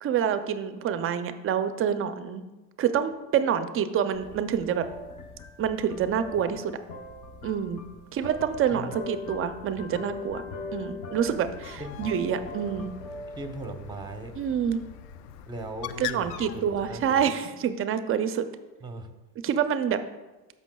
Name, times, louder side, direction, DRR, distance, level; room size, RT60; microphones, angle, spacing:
voice 1, 0.0-2.4 2.8-4.9 5.6-6.7 7.4-7.8 8.1-10.4 10.7-12.9 14.4-14.8 16.0-18.5 19.4-20.0, right 8 dB, 30° right, 10 dB, 0.4 m, -27 dB
sound 1, 4.1-15.7, left 3 dB, 40° left, 0.8 m, -42 dB
Bird, 11.1-17.2, left 11 dB, 70° left, 0.6 m, -42 dB
voice 2, 13.4-14.3 15.5-17.3 18.8-19.1, right 2 dB, 10° right, 6 dB, 0.8 m, -38 dB
13.0 x 5.6 x 2.3 m, 1.1 s
supercardioid pair, 100°, 49 cm